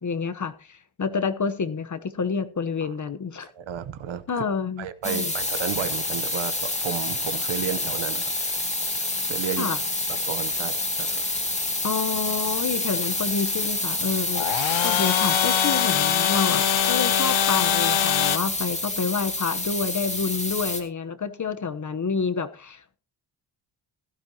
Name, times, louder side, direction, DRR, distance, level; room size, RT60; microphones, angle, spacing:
voice 1, 0.0-3.5 4.3-5.3 9.6-9.8 11.8-23.0, left 5 dB, 40° left, 1.0 m, -28 dB
voice 2, 3.4-4.2 4.8-8.3 9.3-9.7 10.2-11.2, right 8 dB, 75° right, 1.0 m, -32 dB
sound 1, 5.0-20.8, left 2 dB, 15° left, 2.1 m, -28 dB
Chainsaw - Idle with Revs, 5.3-18.4, left 11 dB, 80° left, 0.9 m, -27 dB
16.0 x 12.5 x 2.9 m
wide cardioid pair, 105°, 46 cm